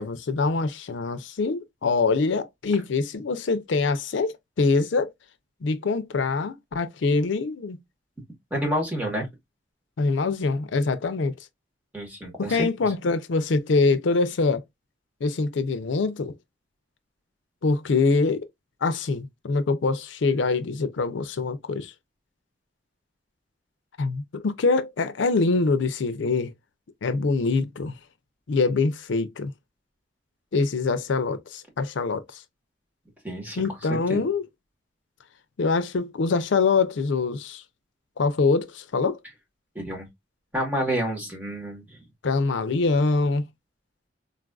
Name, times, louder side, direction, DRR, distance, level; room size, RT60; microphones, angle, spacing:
voice 1, 0.0-5.1 5.6-7.8 10.0-11.3 12.4-14.6 15.2-16.3 17.6-18.5 18.8-21.9 24.0-26.5 27.0-28.0 28.5-29.5 30.5-32.4 33.6-34.4 35.6-37.6 38.2-39.2 42.2-43.5, left 4 dB, 75° left, 0.5 m, -24 dB
voice 2, 8.5-9.3 11.9-12.7 33.2-33.6 33.9-34.2 39.7-40.1 40.5-41.8, equal, 10° right, 1.3 m, -28 dB
3.9 x 2.4 x 2.3 m
head